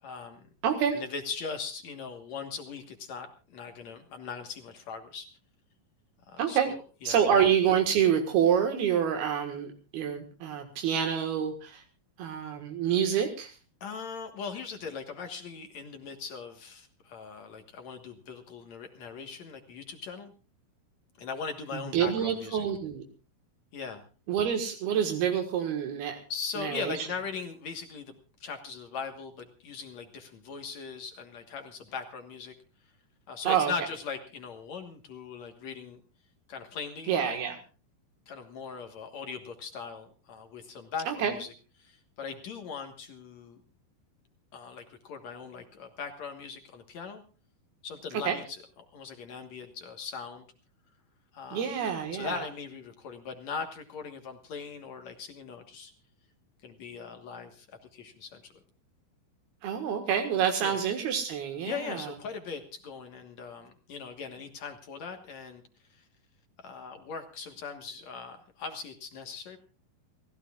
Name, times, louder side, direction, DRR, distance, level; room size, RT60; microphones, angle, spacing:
voice 1, 0.0-0.4 0.9-5.3 6.3-7.2 13.8-20.3 21.2-22.6 23.7-24.0 26.3-32.5 33.3-36.0 36.5-37.4 38.3-41.5 41.8-43.6 44.5-47.2 47.8-48.6 48.9-50.5 51.3-51.7 52.1-55.9 56.6-58.5 60.6-60.8 61.6-65.6 65.9-66.1 66.6-69.6, left 5 dB, 55° left, 5 dB, 2.3 m, -40 dB
voice 2, 0.6-1.0 6.4-6.7 7.1-11.8 12.2-13.6 21.7-23.0 24.3-26.2 26.6-27.1 33.5-33.7 37.1-37.6 41.1-41.3 48.3-48.4 51.5-52.4 59.6-62.1, right 8 dB, 80° right, 4 dB, 3.6 m, -27 dB
28.5 x 15.5 x 2.4 m, 0.35 s
omnidirectional pair, 4.5 m